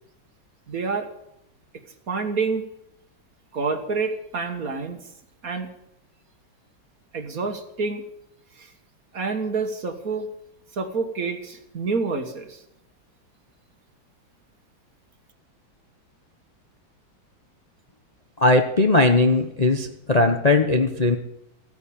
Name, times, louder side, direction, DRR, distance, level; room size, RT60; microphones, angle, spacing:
voice 1, 0.7-1.1 2.1-2.6 3.5-5.0 5.4-5.7 7.1-8.0 8.6-8.7 9.1-10.3 10.7-12.6, right 4 dB, 45° right, 7 dB, 1.8 m, -28 dB
voice 2, 18.4-21.2, left 2 dB, 25° left, 5 dB, 0.9 m, -19 dB
16.0 x 9.7 x 8.6 m, 0.79 s
omnidirectional pair, 2.2 m